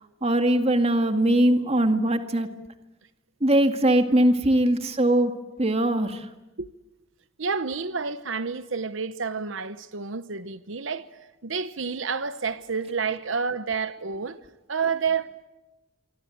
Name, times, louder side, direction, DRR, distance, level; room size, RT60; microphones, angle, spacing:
voice 1, 0.2-2.5 3.4-5.3 5.6-6.3, right 1 dB, 30° right, 2.1 m, -21 dB
voice 2, 7.4-11.1 11.4-14.4 14.7-15.4, right 5 dB, 75° right, 0.9 m, -29 dB
26.5 x 24.5 x 9.3 m
head